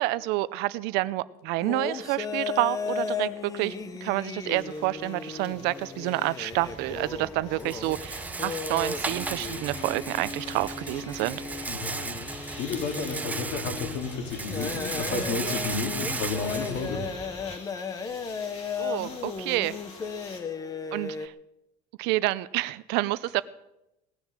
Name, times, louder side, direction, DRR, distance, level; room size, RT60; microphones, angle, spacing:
voice 1, 0.0-3.7 4.0-11.4 18.8-19.7 20.9-21.3 22.0-23.4, right 18 dB, 65° right, 17 dB, 0.6 m, -28 dB
sound 1, 1.6-21.3, left 5 dB, 20° left, 0.8 m, -36 dB
sound 2, 3.1-3.2 3.4-20.4, left 3 dB, 35° left, 3.1 m, -49 dB
Rattle, 6.5-17.6, right 3 dB, 10° right, 0.6 m, -36 dB
voice 2, 11.7-17.0, left 4 dB, 65° left, 4 dB, 3.5 m, -32 dB
18.5 x 10.5 x 7.4 m, 0.91 s
cardioid pair, 175°, 18 cm